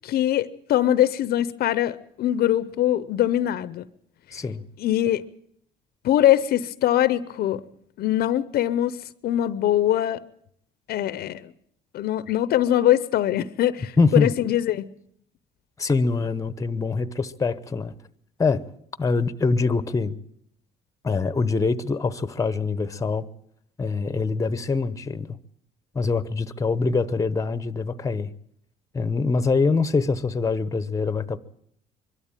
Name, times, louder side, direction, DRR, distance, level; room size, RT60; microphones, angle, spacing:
voice 1, 0.0-3.9 4.8-5.2 6.0-7.6 8.0-9.0 9.2-10.2 10.9-11.5 11.9-14.9, left 12 dB, 65° left, 0.8 m, -22 dB
voice 2, 4.3-4.6 14.0-14.3 15.8-17.9 18.4-18.6 19.0-20.2 21.0-23.2 23.8-25.4 25.9-28.3 28.9-31.4, left 4 dB, 20° left, 1.0 m, -24 dB
23.0 x 12.5 x 9.0 m
cardioid pair, 110°, 17 cm